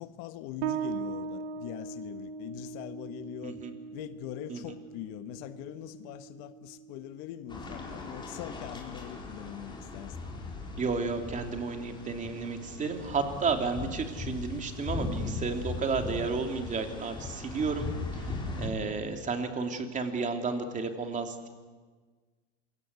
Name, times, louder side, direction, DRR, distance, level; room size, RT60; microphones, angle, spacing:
voice 1, 0.0-3.6 3.9-10.2, left 13 dB, 55° left, 1.4 m, -42 dB
Bass guitar, 0.6-7.8, right 6 dB, 75° right, 2.3 m, -40 dB
sound 1, 7.5-18.7, left 3 dB, 10° left, 4.8 m, -39 dB
voice 2, 10.8-17.9 18.1-21.5, right 4 dB, 20° right, 2.9 m, -32 dB
27.5 x 23.5 x 8.3 m
supercardioid pair, 140°, 36 cm